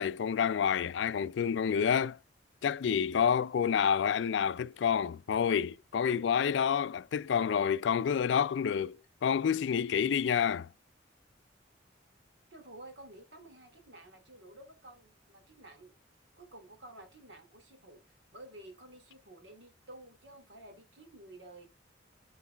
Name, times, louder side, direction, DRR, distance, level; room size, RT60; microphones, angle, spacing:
voice 1, 0.0-2.2 2.6-10.7, left 7 dB, 65° left, 0.3 m, -28 dB
voice 2, 12.5-16.0 16.4-21.7, right 1 dB, 65° right, 2.5 m, -52 dB
9.8 x 4.6 x 3.3 m
head